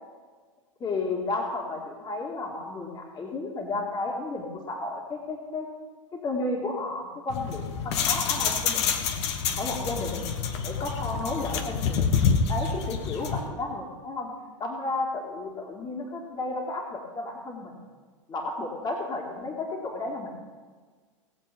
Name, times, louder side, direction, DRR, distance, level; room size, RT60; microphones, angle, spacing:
voice 1, 0.8-5.7 6.1-9.0 9.6-10.3 10.6-12.2 12.5-14.3 14.6-17.7 18.3-20.3, left 2 dB, 25° left, 0 dB, 2.5 m, -32 dB
sound 1, 7.3-13.5, left 6 dB, 55° left, 1.4 m, -27 dB
18.5 x 7.7 x 5.4 m, 1.5 s
hypercardioid pair, 100°, 17 cm